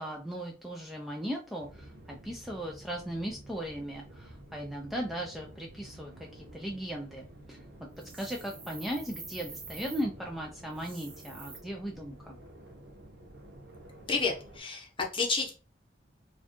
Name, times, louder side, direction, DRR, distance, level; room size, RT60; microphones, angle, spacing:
voice 1, 0.0-7.6 8.1-12.4, equal, ahead, -1 dB, 0.4 m, -37 dB
sound 1, 1.6-14.6, right 1 dB, 60° right, 0.7 m, -51 dB
sound 2, 8.0-10.0 10.7-11.6, right 4 dB, 30° right, 0.9 m, -47 dB
voice 2, 14.1-15.6, left 4 dB, 30° left, 1 dB, 0.8 m, -30 dB
4.2 x 2.3 x 2.9 m, 0.36 s
head